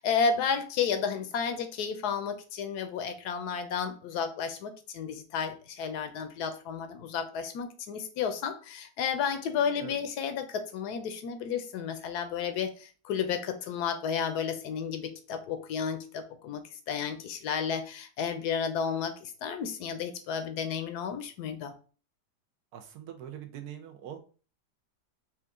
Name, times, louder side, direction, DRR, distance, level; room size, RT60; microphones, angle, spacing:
voice 1, 0.0-21.7, left 6 dB, 75° left, 9 dB, 1.1 m, -32 dB
voice 2, 22.7-24.2, right 10 dB, 70° right, 5 dB, 1.1 m, -43 dB
4.5 x 2.4 x 3.6 m, 0.37 s
omnidirectional pair, 1.8 m